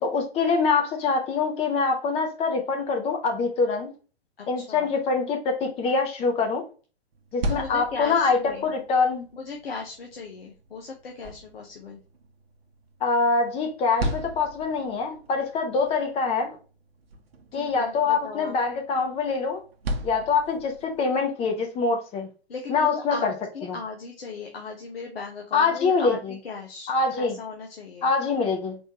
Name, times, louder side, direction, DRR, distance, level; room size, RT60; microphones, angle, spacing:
voice 1, 0.0-3.9 4.5-6.6 7.3-9.2 13.0-16.6 17.5-19.6 20.0-22.3 22.7-23.3 23.7-23.8 25.5-26.3 26.9-27.4 28.0-28.8, left 4 dB, 20° left, 0.8 m, -24 dB
voice 2, 4.4-4.9 7.5-8.7 9.3-12.0 17.5-18.6 22.5-28.1, left 4 dB, 60° left, 1.0 m, -37 dB
sound 1, 7.1-21.1, right 1 dB, 65° right, 0.8 m, -38 dB
4.2 x 3.3 x 2.8 m
figure-of-eight pair, 110°, 32 cm